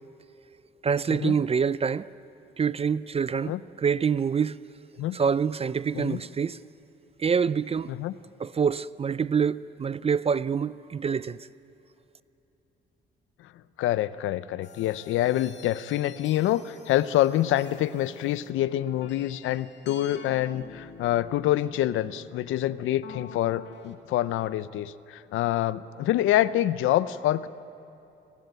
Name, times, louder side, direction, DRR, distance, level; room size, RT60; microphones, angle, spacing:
voice 1, 0.8-2.1 2.6-4.6 5.1-6.6 7.2-7.9 8.4-11.4, right 6 dB, 30° right, 0.4 m, -26 dB
voice 2, 13.8-27.5, left 13 dB, 85° left, 0.7 m, -26 dB
sound 1, 14.6-23.9, left 6 dB, 65° left, 2.0 m, -48 dB
29.0 x 13.5 x 9.2 m
cardioid pair, 90°, 20 cm